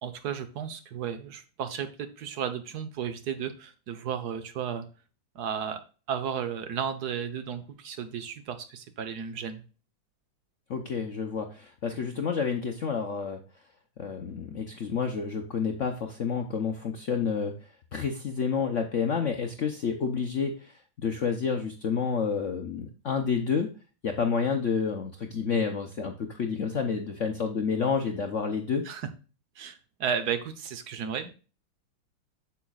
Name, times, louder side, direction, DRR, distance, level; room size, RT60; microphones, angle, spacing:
voice 1, 0.0-4.9 5.3-5.8 6.1-9.6 28.8-29.1 29.6-31.3, right 7 dB, 60° right, 10 dB, 1.3 m, -34 dB
voice 2, 10.7-13.4 14.0-17.5 17.9-23.7 24.0-28.8, left 6 dB, 60° left, 4 dB, 0.8 m, -29 dB
8.7 x 7.1 x 2.4 m, 0.34 s
omnidirectional pair, 2.2 m